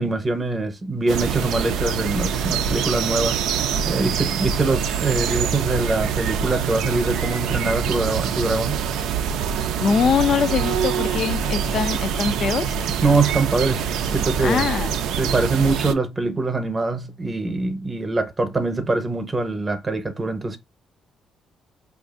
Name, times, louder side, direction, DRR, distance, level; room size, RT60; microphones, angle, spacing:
voice 1, 0.0-8.8 13.0-14.6 15.2-20.6, right 3 dB, 25° right, 0.8 m, -23 dB
sound 1, 1.1-15.9, right 7 dB, 90° right, 0.4 m, -25 dB
voice 2, 9.8-12.7 14.4-14.9, left 7 dB, 55° left, 0.3 m, -22 dB
5.1 x 2.4 x 2.4 m
cardioid pair, 90°, 0 cm